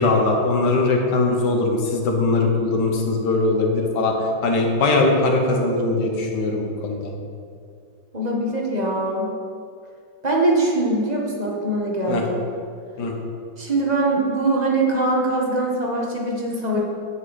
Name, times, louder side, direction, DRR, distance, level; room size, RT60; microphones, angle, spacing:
voice 1, 0.0-4.2 4.4-7.1 12.1-12.2 13.0-13.1, left 3 dB, 60° left, 2 dB, 1.7 m, -20 dB
voice 2, 8.1-9.3 10.2-12.4 13.6-16.8, right 2 dB, 25° right, -2 dB, 1.3 m, -22 dB
10.0 x 8.0 x 4.1 m, 2.3 s
omnidirectional pair, 2.2 m